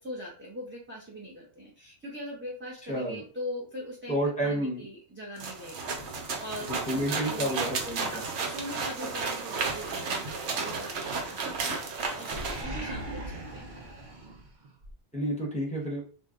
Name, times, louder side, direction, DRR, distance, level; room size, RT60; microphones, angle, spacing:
voice 1, 0.0-7.6 8.0-13.7, equal, 15° right, -5 dB, 0.5 m, -42 dB
voice 2, 2.9-3.2 4.1-4.8 6.7-8.2 15.1-16.0, right 1 dB, 5° left, -5 dB, 0.9 m, -30 dB
sound 1, 5.4-12.6, right 4 dB, 85° right, 1.0 m, -33 dB
Animal, 9.6-10.4 10.9-11.7 12.0-14.9, right 1 dB, 50° right, 0.7 m, -40 dB
2.6 x 2.1 x 3.6 m, 0.40 s
omnidirectional pair, 1.2 m